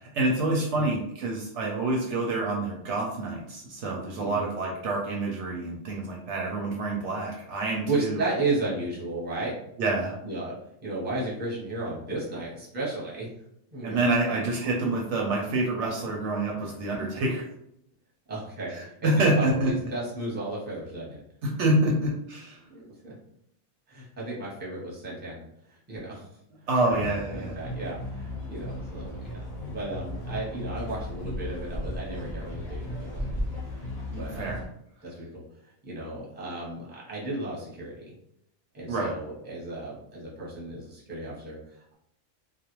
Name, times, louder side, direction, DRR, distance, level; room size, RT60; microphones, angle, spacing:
voice 1, 0.0-8.2 9.8-10.2 13.8-17.5 18.7-19.7 21.4-22.6 26.7-27.5 34.1-34.6 38.9-39.1, right 2 dB, 70° right, -1 dB, 0.8 m, -27 dB
voice 2, 7.9-9.7 10.2-10.6 10.8-13.3 13.7-14.5 15.5-15.6 18.3-21.2 21.8-21.9 22.7-23.1 23.9-26.3 26.8-27.0 27.3-33.4 33.8-33.9 34.1-34.6 35.0-38.1 38.7-41.9, right 2 dB, 10° right, -6 dB, 0.7 m, -34 dB
sound 1, 26.9-34.7, left 1 dB, 40° left, 0.6 m, -35 dB
2.4 x 2.1 x 2.9 m, 0.76 s
omnidirectional pair, 1.3 m